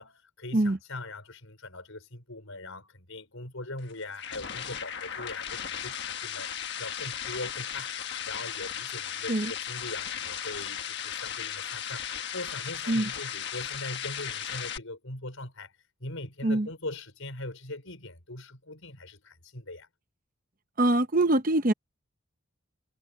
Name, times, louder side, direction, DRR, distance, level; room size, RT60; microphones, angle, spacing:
voice 1, 0.0-15.7 16.0-19.9, left 2 dB, 70° left, 5.3 m, -41 dB
sound 1, 3.8-14.8, left 9 dB, 50° left, 1.5 m, -36 dB
voice 2, 20.8-21.7, right 1 dB, 40° right, 1.0 m, -24 dB
head